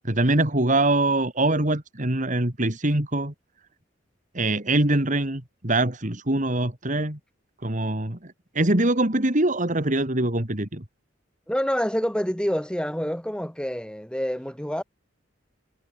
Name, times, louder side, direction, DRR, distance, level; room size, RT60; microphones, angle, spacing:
voice 1, 0.0-3.3 4.3-7.2 7.6-10.8, right 2 dB, 45° right, 3.0 m, -23 dB
voice 2, 11.5-14.8, equal, 5° left, 5.6 m, -27 dB
head